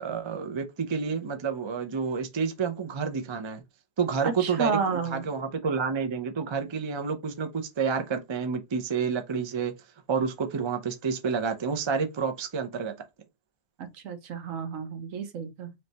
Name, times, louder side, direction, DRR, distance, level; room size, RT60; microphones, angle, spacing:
voice 1, 0.0-3.6 4.0-9.7 10.1-12.9, right 5 dB, 45° right, 0.3 m, -29 dB
voice 2, 4.2-5.2 13.8-15.7, right 6 dB, 70° right, 1.1 m, -31 dB
3.3 x 3.1 x 3.9 m
omnidirectional pair, 1.4 m